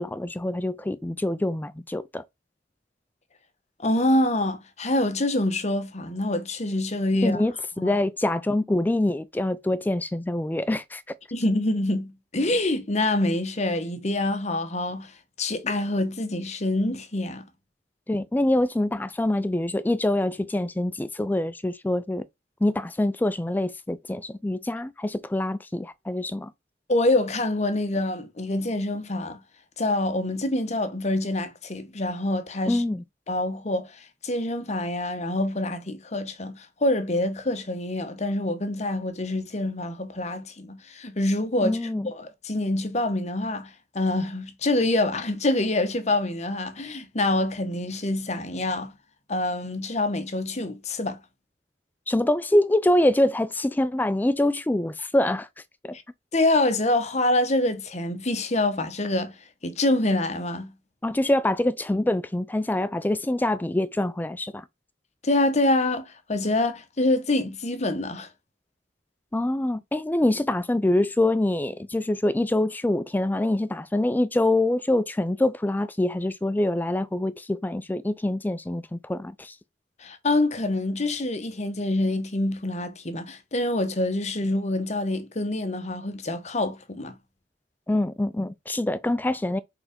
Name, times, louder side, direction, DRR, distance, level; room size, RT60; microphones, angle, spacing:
voice 1, 0.0-2.2 7.2-11.0 18.1-22.2 22.6-26.5 32.7-33.0 41.6-42.1 52.1-55.5 55.8-56.0 61.0-64.6 69.3-79.6 87.9-89.6, left 1 dB, 10° left, 0.3 m, -25 dB
voice 2, 3.8-7.4 7.8-8.0 11.3-15.1 15.4-17.5 26.9-29.4 29.8-32.8 33.3-48.9 49.3-51.2 55.9-56.0 56.3-59.4 59.6-60.7 65.2-68.3 80.0-87.1, left 2 dB, 40° left, 1.0 m, -26 dB
4.9 x 4.7 x 5.1 m
head